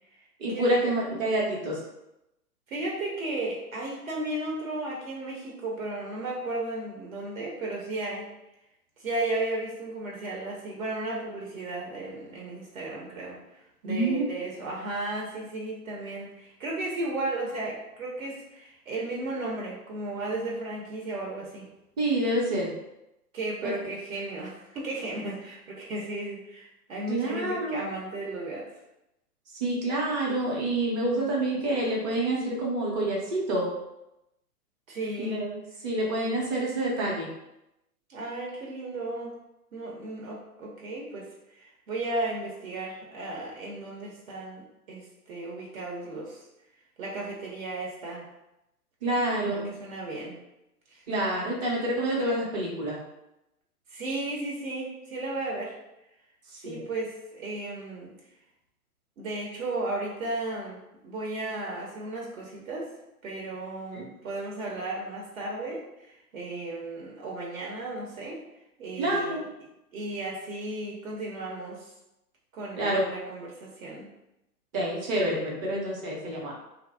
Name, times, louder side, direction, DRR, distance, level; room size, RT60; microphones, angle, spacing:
voice 1, 0.4-1.8 13.8-14.3 22.0-22.7 23.6-23.7 27.1-27.8 29.5-33.7 35.2-35.6 35.8-37.3 49.0-49.7 51.1-53.0 56.5-56.8 63.9-64.0 69.0-69.4 72.8-73.1 74.7-76.5, right 1 dB, 25° right, -4 dB, 0.7 m, -27 dB
voice 2, 2.7-8.3 9.0-13.4 13.8-21.7 23.3-28.7 34.9-35.5 38.1-39.3 39.7-46.4 47.0-48.2 49.5-50.4 50.9-51.0 53.9-55.7 56.6-58.1 59.2-62.9 63.2-68.4 68.8-69.5 69.9-71.9 72.5-74.1, right 2 dB, 60° right, -3 dB, 0.9 m, -34 dB
2.6 x 2.0 x 3.3 m, 0.89 s
hypercardioid pair, 125°, 47 cm